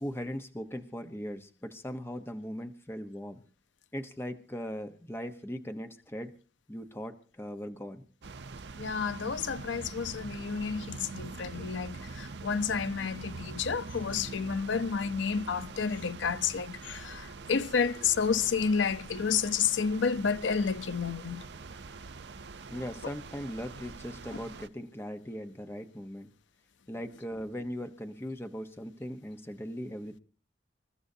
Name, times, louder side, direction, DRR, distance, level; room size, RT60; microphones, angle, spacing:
voice 1, 0.0-3.4 3.9-6.3 6.7-8.0 22.7-26.3 26.9-30.2, equal, 15° left, 0.9 m, -39 dB
sound 1, 8.2-24.7, right 3 dB, 65° right, 0.6 m, -44 dB
voice 2, 8.8-21.4 24.3-24.4, left 6 dB, 85° left, 0.6 m, -30 dB
27.5 x 14.0 x 2.7 m
head